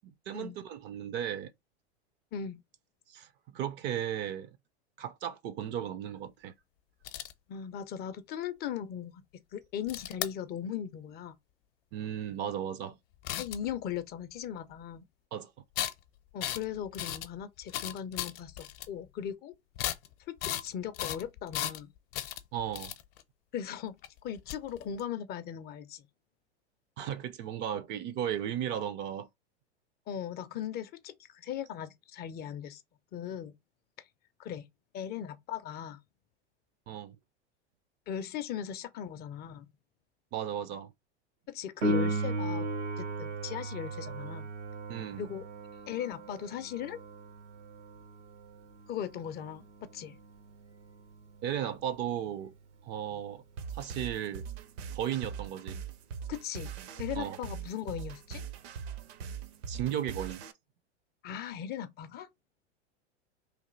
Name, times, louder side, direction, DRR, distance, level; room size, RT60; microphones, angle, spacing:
voice 1, 0.0-1.5 3.1-4.5 5.0-6.5 11.9-13.0 15.3-15.5 22.5-22.9 27.0-29.3 36.9-37.2 40.3-40.9 44.9-45.3 51.4-52.5 52.8-53.4 53.7-54.5 54.9-55.8 57.2-57.4 59.7-60.4, right 10 dB, 35° right, 0.4 m, -35 dB
voice 2, 2.3-2.6 7.5-9.2 9.5-11.4 13.4-15.1 16.3-19.6 20.3-21.9 23.5-24.0 24.2-26.0 30.1-32.8 33.1-33.5 34.4-34.7 34.9-36.0 38.1-39.7 41.5-42.7 43.0-44.5 45.2-45.5 45.9-47.0 48.9-50.2 56.3-56.7 57.0-58.4 61.2-62.3, left 9 dB, 30° left, 0.4 m, -38 dB
sound 1, 7.0-7.3 9.9-10.3 13.2-13.8 15.8-15.9 16.4-16.6 16.9-17.3 17.6-18.9 19.7-20.1 20.4-20.7 20.9-21.8 22.1-23.2 24.0-24.1 24.4-25.0, left 13 dB, 55° left, 0.7 m, -35 dB
Piano, 41.8-52.2 59.8-59.9, right 1 dB, 85° right, 1.0 m, -37 dB
sound 2, 53.6-60.5, right 7 dB, 65° right, 0.7 m, -41 dB
3.2 x 2.7 x 3.7 m
hypercardioid pair, 100°, 35 cm